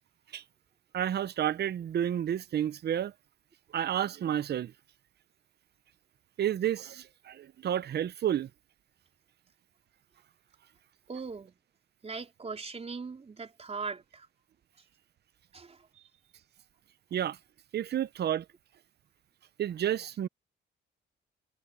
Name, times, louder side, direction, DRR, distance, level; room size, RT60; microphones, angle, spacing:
voice 1, 0.9-3.1 3.7-4.7 6.4-8.5 17.1-17.4 17.7-18.4 19.6-20.3, right 10 dB, 55° right, 0.8 m, -30 dB
voice 2, 11.1-11.6 12.0-14.3 15.5-16.1, right 4 dB, 30° right, 4.4 m, -40 dB
cardioid pair, 90°, 20 cm